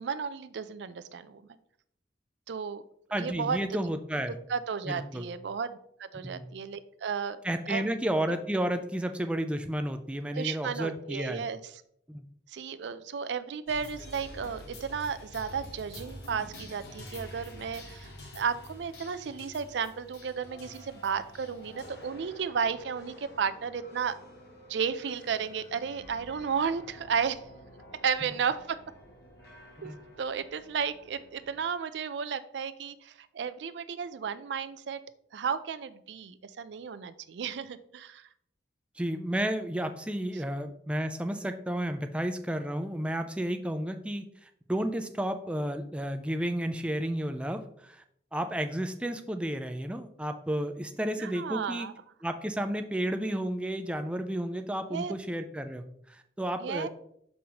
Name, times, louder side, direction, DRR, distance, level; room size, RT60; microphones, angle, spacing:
voice 1, 0.0-1.4 2.5-2.8 3.2-3.8 4.5-7.4 7.7-7.9 10.3-11.6 12.5-24.2 24.7-27.4 28.0-28.8 29.8-35.0 35.3-38.3 51.0-51.9 54.9-55.1 56.6-56.9, right 6 dB, 80° right, 13 dB, 0.4 m, -33 dB
voice 2, 3.1-4.3 4.9-5.3 6.2-6.4 7.4-11.4 12.1-12.2 29.8-30.0 39.0-48.0 48.3-51.9 52.2-56.9, right 1 dB, 5° right, 7 dB, 0.3 m, -32 dB
sound 1, 13.7-31.7, left 1 dB, 65° left, 1.4 m, -49 dB
6.3 x 5.4 x 2.9 m, 0.70 s
head